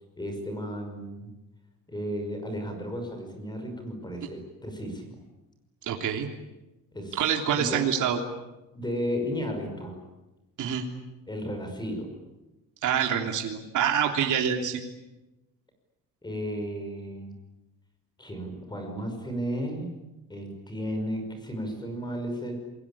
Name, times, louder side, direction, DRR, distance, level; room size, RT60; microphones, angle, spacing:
voice 1, 0.2-1.3 1.9-5.2 6.9-7.2 7.6-7.8 8.7-10.0 11.3-12.2 16.2-17.4 18.2-19.9 20.3-22.6, equal, 10° left, 5 dB, 5.7 m, -34 dB
voice 2, 5.9-6.3 7.2-8.2 10.6-10.8 12.8-14.8, right 8 dB, 55° right, 3 dB, 3.3 m, -26 dB
29.0 x 22.0 x 8.7 m, 1.0 s
cardioid pair, 160°, 36 cm